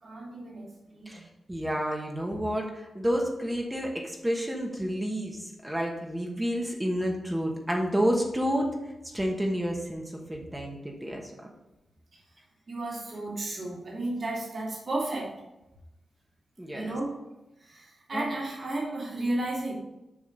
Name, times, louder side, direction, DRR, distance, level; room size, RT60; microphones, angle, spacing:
voice 1, 0.0-1.2 12.1-12.2 12.7-15.3 16.7-17.1 17.6-19.7, right 2 dB, 45° right, -4 dB, 2.5 m, -33 dB
voice 2, 1.5-8.7 9.1-11.3 16.6-16.9 18.1-18.2, equal, 10° right, 0 dB, 1.1 m, -30 dB
7.2 x 5.1 x 5.1 m, 0.95 s
wide cardioid pair, 135°, 0 cm